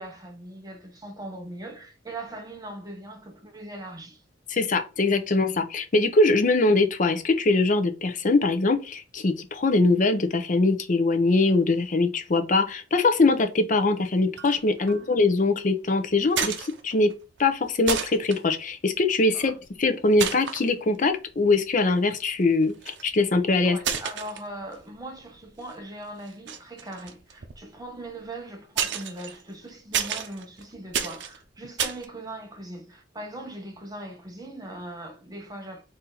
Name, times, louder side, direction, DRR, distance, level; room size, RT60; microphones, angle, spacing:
voice 1, 0.0-4.2 14.8-15.1 19.3-19.6 23.6-35.8, right 1 dB, 20° right, 1.0 m, -40 dB
voice 2, 4.5-17.1 17.4-19.5 19.8-23.8, left 3 dB, 45° left, 0.6 m, -22 dB
sound 1, 14.4-14.6 14.9-15.2 16.3-17.1 17.4-17.5 17.9-18.4 19.4-19.7 20.2-20.7 21.3-21.4 22.6-23.1 23.8-25.0 25.3-25.7 26.3-28.2 28.8-32.1, right 8 dB, 80° right, 0.6 m, -31 dB
4.3 x 2.7 x 3.8 m
head